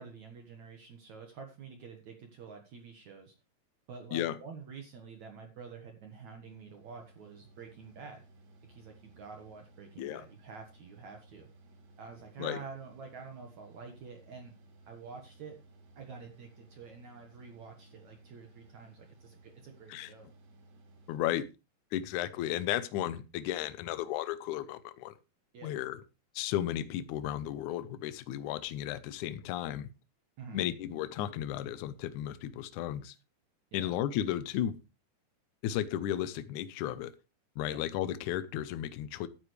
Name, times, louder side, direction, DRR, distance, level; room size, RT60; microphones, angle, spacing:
voice 1, 0.0-3.3 3.9-8.3 8.7-11.5 12.0-14.5 14.9-15.6 16.0-20.3 25.5-25.8 30.4-30.6 33.7-34.0 37.7-37.8, right 5 dB, 60° right, 2.4 m, -48 dB
Mechanical fan, 5.8-21.2, right 2 dB, 75° right, 4.4 m, -59 dB
voice 2, 21.1-21.5 21.9-25.1 25.6-26.0 26.4-29.9 30.5-33.2 33.7-34.8 35.6-37.1 37.6-39.3, left 12 dB, 85° left, 1.7 m, -34 dB
13.0 x 10.0 x 3.3 m
omnidirectional pair, 4.5 m